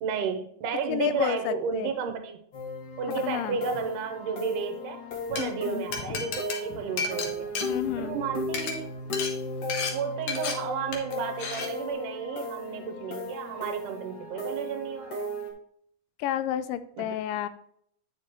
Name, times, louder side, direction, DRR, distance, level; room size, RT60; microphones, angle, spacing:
voice 1, 0.0-2.4 3.0-5.0 5.3-7.5 8.0-8.9 9.9-15.3 17.0-17.1, right 6 dB, 75° right, 6 dB, 2.3 m, -32 dB
voice 2, 0.9-1.9 3.2-3.6 5.4-6.3 7.7-8.2 16.2-17.5, left 10 dB, 90° left, 13 dB, 2.2 m, -31 dB
sound 1, 2.5-15.5, left 2 dB, 45° left, 1.8 m, -36 dB
Glass, 5.1-5.4 5.9-8.2 8.5-8.7 9.1-9.3 9.7-9.9 10.3-10.5 10.9-11.1 11.4-11.7, left 5 dB, 65° left, 2.3 m, -32 dB
9.5 x 6.7 x 3.0 m, 0.69 s
omnidirectional pair, 3.8 m